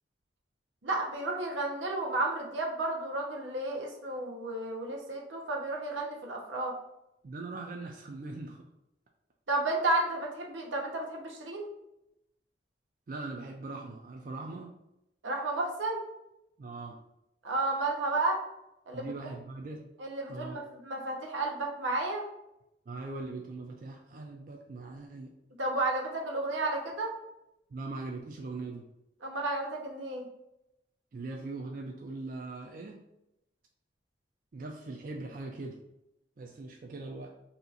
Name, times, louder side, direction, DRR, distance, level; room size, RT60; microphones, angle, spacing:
voice 1, 0.8-6.7 9.5-11.7 15.2-16.0 17.4-18.4 18.9-19.1 20.0-22.2 25.6-27.1 29.2-30.3, right 2 dB, 90° right, 0 dB, 0.8 m, -32 dB
voice 2, 7.2-8.6 13.1-14.7 16.6-17.0 18.9-19.8 20.3-20.6 22.9-25.3 27.7-28.9 31.1-33.0 34.5-35.8 36.4-37.3, right 3 dB, 45° right, 1 dB, 0.3 m, -41 dB
2.8 x 2.4 x 3.8 m, 0.86 s
head